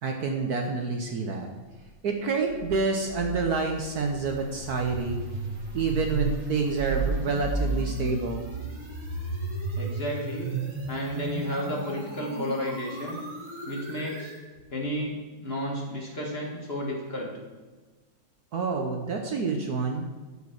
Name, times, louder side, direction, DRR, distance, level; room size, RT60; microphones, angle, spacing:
voice 1, 0.0-1.5 2.0-5.2 5.7-8.4 18.5-20.1, right 4 dB, 60° right, 3 dB, 1.3 m, -28 dB
sound 1, 2.3-14.4, right 3 dB, 40° right, 2.6 m, -34 dB
voice 2, 9.8-10.5 10.9-13.2 13.6-14.3 14.7-17.3, equal, 30° left, -2 dB, 1.8 m, -32 dB
11.5 x 5.2 x 6.4 m, 1.3 s
omnidirectional pair, 2.1 m